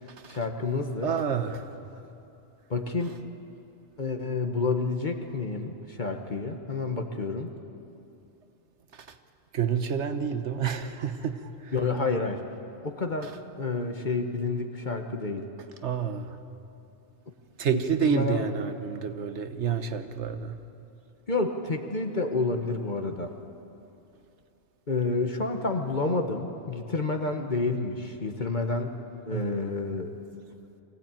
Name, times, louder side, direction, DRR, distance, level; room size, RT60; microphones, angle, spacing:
voice 1, 0.3-1.1 2.7-3.2 4.0-7.5 11.7-12.4 12.8-15.5 17.7-18.4 21.3-23.3 24.9-29.0 29.2-30.1, left 3 dB, 45° left, 4 dB, 1.3 m, -29 dB
voice 2, 1.0-1.8 8.9-9.1 9.5-11.7 15.8-16.4 17.6-20.6 29.3-29.7, right 7 dB, 80° right, 9 dB, 1.4 m, -29 dB
23.0 x 16.5 x 8.9 m, 2.8 s
omnidirectional pair, 1.2 m